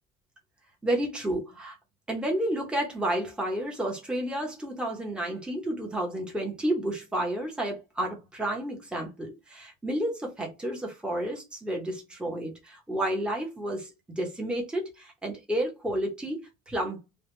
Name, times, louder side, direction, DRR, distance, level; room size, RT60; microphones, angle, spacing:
voice 1, 0.8-1.8 2.1-16.4 16.7-17.0, right 1 dB, 5° right, 0.9 m, -31 dB
3.4 x 2.3 x 4.3 m
cardioid pair, 160°, 31 cm